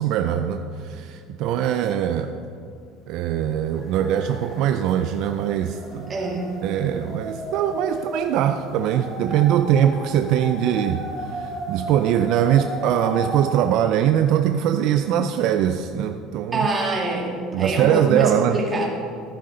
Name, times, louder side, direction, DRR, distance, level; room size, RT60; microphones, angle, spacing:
voice 1, 0.0-2.4 3.1-6.1 6.6-11.0 11.3-16.7 17.5-18.6, right 10 dB, 55° right, 8 dB, 0.4 m, -22 dB
sound 1, 3.2-3.3 3.6-13.9, right 1 dB, 25° left, 1.9 m, -34 dB
voice 2, 6.1-6.5 16.5-18.9, right 2 dB, 20° right, -3 dB, 2.0 m, -25 dB
14.0 x 11.0 x 3.9 m, 2.5 s
cardioid pair, 170°, 0 cm